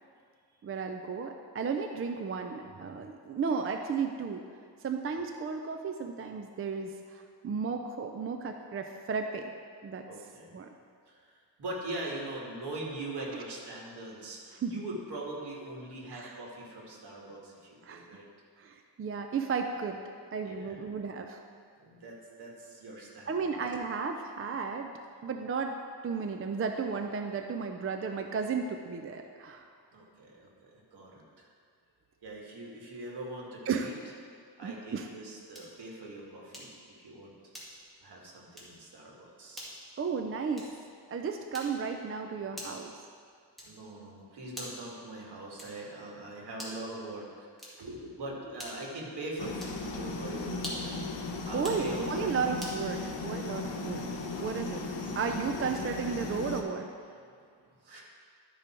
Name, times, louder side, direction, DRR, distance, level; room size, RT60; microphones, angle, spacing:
voice 1, 0.6-4.4 4.8-9.5 9.8-10.0 10.5-10.7 14.6-14.8 16.1-16.3 17.8-18.1 18.6-20.0 20.3-21.4 23.3-24.9 25.2-25.8 26.0-29.7 33.7-33.9 34.6-35.1 40.0-40.7 41.1-43.0 51.5-54.1 54.4-54.9 55.2-56.9, right 5 dB, 35° right, 5 dB, 0.4 m, -34 dB
voice 2, 10.1-10.6 11.1-18.3 20.4-20.8 21.8-23.6 29.9-31.5 32.2-33.9 34.6-37.3 38.0-39.7 43.6-47.3 47.6-50.9 51.4-52.4 54.3-54.9 55.2-55.4 57.1-57.2 57.8-58.0, right 2 dB, 65° right, -2 dB, 1.9 m, -42 dB
sound 1, 35.5-35.8 36.5-36.9 37.5-38.0 38.5-38.8 39.5-39.8 40.5-40.9 41.5-41.9 42.5-42.9 43.5-43.9 44.5-44.9 45.6-45.9 46.5-46.9 47.5-48.0 48.6-49.0 49.6-49.9 50.5-51.0 51.5-51.9 52.6-52.8, equal, ahead, 2.1 m, -44 dB
sound 2, 49.4-56.6, left 3 dB, 90° left, 1.0 m, -36 dB
12.0 x 5.3 x 4.4 m, 2.2 s
wide cardioid pair, 125°, 42 cm